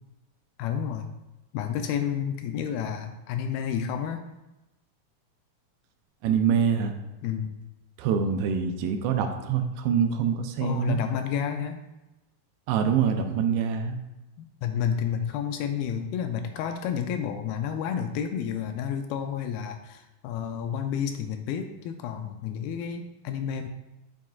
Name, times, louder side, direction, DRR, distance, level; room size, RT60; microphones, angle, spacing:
voice 1, 0.6-1.1 1.5-4.2 7.2-7.6 10.6-11.8 14.4-23.7, left 8 dB, 80° left, 6 dB, 2.3 m, -30 dB
voice 2, 6.2-7.0 8.0-11.0 12.7-14.0, right 7 dB, 80° right, 6 dB, 2.5 m, -25 dB
9.1 x 7.1 x 2.4 m, 1.0 s
omnidirectional pair, 4.6 m